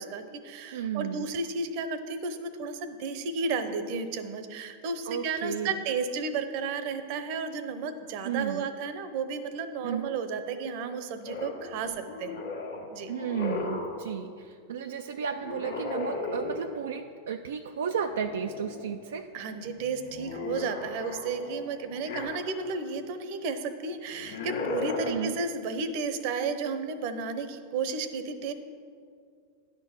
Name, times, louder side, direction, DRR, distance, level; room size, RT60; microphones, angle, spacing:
voice 1, 0.0-12.4 12.9-13.1 19.3-28.5, right 4 dB, 60° right, 10 dB, 0.8 m, -33 dB
voice 2, 0.7-1.3 5.1-5.7 8.2-8.6 9.8-10.1 13.1-19.3 25.0-25.4, right 7 dB, 85° right, 5 dB, 0.3 m, -33 dB
sound 1, 11.2-14.1 15.4-17.0 17.9-18.9 19.3-22.8 24.1-25.1, left 3 dB, 85° left, 1.4 m, -36 dB
9.9 x 4.5 x 7.2 m, 2.2 s
hypercardioid pair, 110°, 0 cm